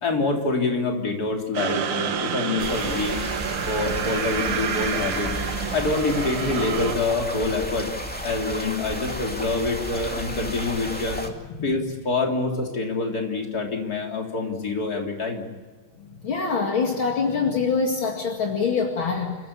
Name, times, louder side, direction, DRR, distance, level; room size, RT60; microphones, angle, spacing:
voice 1, 0.0-3.2 3.6-5.3 5.7-7.9 8.2-11.2 11.6-15.4, left 3 dB, 45° left, 1 dB, 3.9 m, -26 dB
sound 1, 1.5-7.0, right 8 dB, 90° right, 2.1 m, -29 dB
sound 2, 2.6-11.3, equal, 5° left, 2.4 m, -32 dB
voice 2, 16.2-19.4, left 5 dB, 65° left, 1 dB, 3.0 m, -24 dB
29.0 x 15.5 x 8.6 m, 1.5 s
omnidirectional pair, 2.3 m